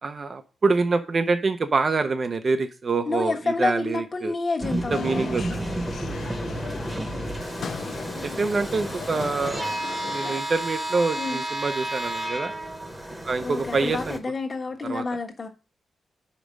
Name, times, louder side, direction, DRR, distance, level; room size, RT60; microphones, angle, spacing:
voice 1, 0.0-4.3 4.9-5.4 8.2-9.6 10.1-12.5 13.3-14.2 14.9-15.0, right 4 dB, 40° right, 0.6 m, -25 dB
voice 2, 3.0-5.6 11.2-11.4 13.4-15.5, left 3 dB, 40° left, 1.3 m, -29 dB
sound 1, 4.6-14.2, right 1 dB, 10° right, 1.1 m, -31 dB
sound 2, 4.9-10.4, left 6 dB, 65° left, 0.4 m, -37 dB
5.2 x 5.0 x 6.3 m
wide cardioid pair, 125°, 0 cm